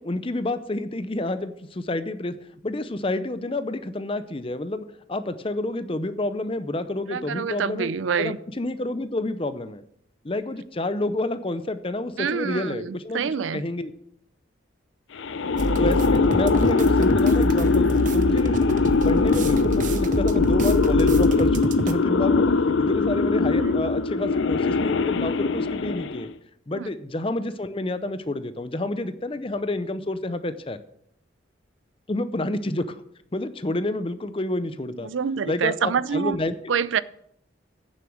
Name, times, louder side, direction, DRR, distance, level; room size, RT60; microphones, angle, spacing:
voice 1, 0.0-2.4 2.6-7.9 8.2-9.8 10.2-13.9 15.8-18.7 19.0-26.3 26.7-30.8 32.1-33.0 33.3-35.1 35.4-36.5, left 2 dB, 30° left, 0.6 m, -29 dB
voice 2, 7.1-8.4 12.2-13.6 23.6-23.8 26.7-26.9 35.0-36.4 36.7-37.0, right 6 dB, 80° right, 0.4 m, -26 dB
sound 1, 15.2-26.3, left 4 dB, 75° left, 0.5 m, -21 dB
sound 2, 15.6-21.9, right 1 dB, 40° right, 0.7 m, -27 dB
9.1 x 7.1 x 6.3 m
head